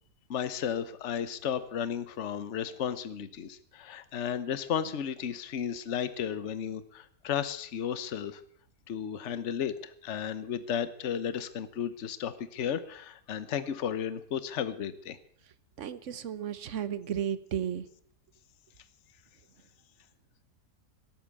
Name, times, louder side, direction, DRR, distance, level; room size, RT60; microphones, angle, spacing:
voice 1, 0.3-8.4 8.9-15.2, left 8 dB, 50° left, 13 dB, 1.2 m, -34 dB
voice 2, 15.8-17.9, right 9 dB, 55° right, 14 dB, 1.1 m, -34 dB
18.0 x 8.8 x 8.3 m, 0.63 s
omnidirectional pair, 1.7 m